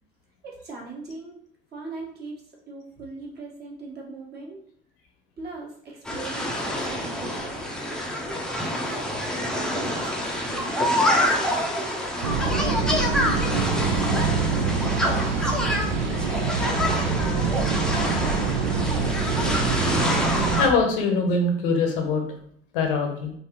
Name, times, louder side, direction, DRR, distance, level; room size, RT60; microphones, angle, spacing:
voice 1, 0.4-1.4 1.7-2.4 2.7-4.6 5.4-7.7 8.2-10.8 11.4-16.2, right 3 dB, 35° right, -2 dB, 1.4 m, -40 dB
sound 1, 6.0-20.7, left 1 dB, ahead, 0.6 m, -27 dB
sound 2, 12.2-20.7, right 5 dB, 70° right, 0.6 m, -25 dB
voice 2, 20.6-22.2 22.7-23.3, left 3 dB, 60° left, 4 dB, 0.8 m, -23 dB
3.8 x 2.6 x 3.0 m, 0.66 s
figure-of-eight pair, 60°, 30 cm